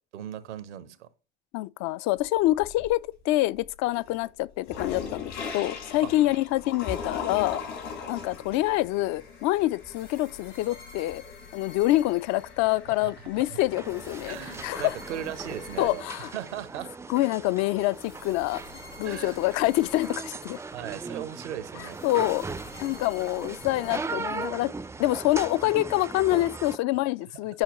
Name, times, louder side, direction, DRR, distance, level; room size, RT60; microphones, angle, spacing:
voice 1, 0.1-1.1 6.0-6.4 12.9-13.6 14.3-16.9 19.0-19.4 20.7-22.0, right 11 dB, 85° right, 0.8 m, -38 dB
voice 2, 1.5-7.6 8.1-11.2 11.5-14.9 15.8-16.3 17.1-18.6 19.0-20.6 22.0-22.5 22.8-24.7 25.0-27.6, left 17 dB, 55° left, 0.4 m, -26 dB
sound 1, 2.2-3.1 3.6-15.9, left 5 dB, 75° left, 4.4 m, -40 dB
sound 2, 9.9-13.0 13.8-16.9 17.9-21.1 21.9-25.0, left 5 dB, 90° left, 3.3 m, -50 dB
sound 3, 13.7-26.8, right 4 dB, 10° right, 0.3 m, -39 dB
8.9 x 5.7 x 3.0 m
hypercardioid pair, 65°, 34 cm